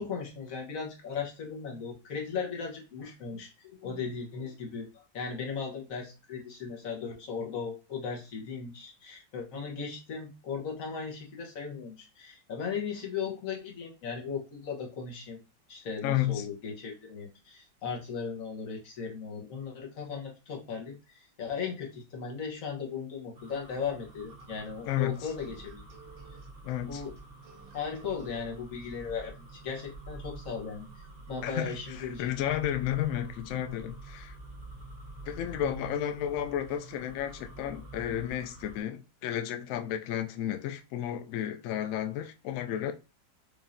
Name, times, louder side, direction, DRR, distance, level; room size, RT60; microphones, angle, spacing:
voice 1, 0.0-15.4 15.7-25.8 26.9-27.1 27.7-30.9 31.3-32.3, left 6 dB, 55° left, 1.3 m, -37 dB
voice 2, 16.0-16.5 24.9-25.3 26.6-27.0 31.4-34.3 35.2-42.9, left 11 dB, 75° left, 0.7 m, -32 dB
sound 1, 23.3-38.8, right 2 dB, 40° right, 1.1 m, -47 dB
sound 2, 24.3-28.5, right 4 dB, 80° right, 1.6 m, -55 dB
5.0 x 2.6 x 2.5 m
omnidirectional pair, 1.9 m